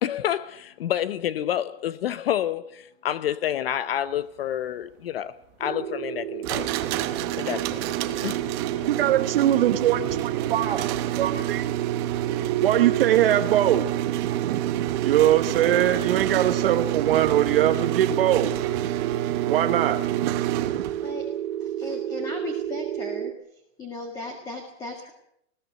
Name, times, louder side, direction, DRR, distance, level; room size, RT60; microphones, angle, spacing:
voice 1, 0.0-6.7 7.4-7.9 8.2-8.4, left 11 dB, 55° left, 0.8 m, -28 dB
sound 1, 5.6-23.3, right 11 dB, 85° right, 1.3 m, -32 dB
sound 2, 6.4-21.1, right 13 dB, 20° right, 0.9 m, -28 dB
voice 2, 8.9-10.9 11.1-11.7 12.6-13.9 14.2-18.5 19.3-20.3 20.7-20.9, right 11 dB, 55° right, 1.1 m, -22 dB
voice 3, 21.8-23.3 23.8-25.1, left 2 dB, 10° left, 1.8 m, -36 dB
20.5 x 16.5 x 7.8 m
supercardioid pair, 175°, 35 cm